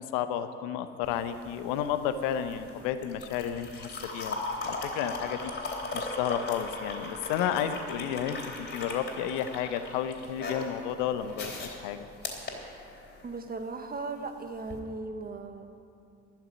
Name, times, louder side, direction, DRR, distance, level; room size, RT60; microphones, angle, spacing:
voice 1, 0.0-5.5 5.9-12.1, left 9 dB, 65° left, 10 dB, 0.8 m, -32 dB
sound 1, 1.0-13.3 14.6-14.8, left 2 dB, 30° left, 3.4 m, -38 dB
voice 2, 13.2-15.7, right 3 dB, 25° right, 7 dB, 1.3 m, -37 dB
13.0 x 7.4 x 9.9 m, 2.5 s
hypercardioid pair, 60°, 35 cm